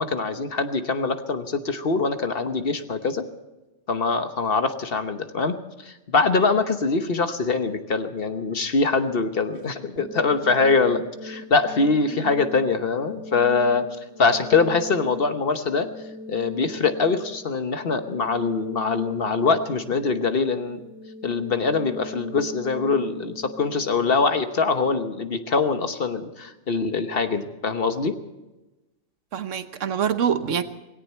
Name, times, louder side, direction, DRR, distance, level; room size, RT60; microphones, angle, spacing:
voice 1, 0.0-3.2 3.9-5.6 5.8-13.9 14.2-15.9 16.3-20.8 21.2-28.2, left 4 dB, 50° left, 8 dB, 1.2 m, -23 dB
sound 1, 10.0-25.0, left 1 dB, 15° right, 0.5 m, -41 dB
voice 2, 29.3-30.6, right 8 dB, 80° right, 11 dB, 1.3 m, -25 dB
18.0 x 17.5 x 4.4 m, 1.0 s
omnidirectional pair, 1.3 m